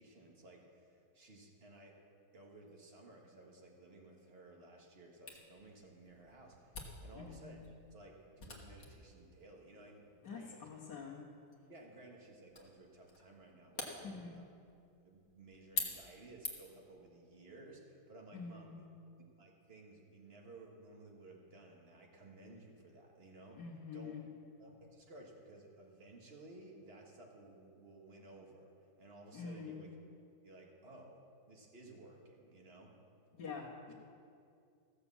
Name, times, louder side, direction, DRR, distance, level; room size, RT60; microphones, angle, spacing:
voice 1, 0.0-2.0 2.3-7.6 7.9-10.7 11.7-14.1 14.3-14.5 15.0-18.9 19.4-23.6 23.9-24.3 24.6-28.7 29.0-29.9 30.4-31.2 31.5-32.9, right 2 dB, 35° right, 0 dB, 1.8 m, -56 dB
Camera, 5.3-16.9, left 4 dB, 45° left, 1.7 m, -48 dB
voice 2, 10.2-11.3 14.0-14.4 18.3-18.8 23.5-24.3 29.3-29.8 33.3-33.9, left 5 dB, 75° left, -6 dB, 1.8 m, -46 dB
15.0 x 7.0 x 7.2 m, 2.4 s
omnidirectional pair, 1.8 m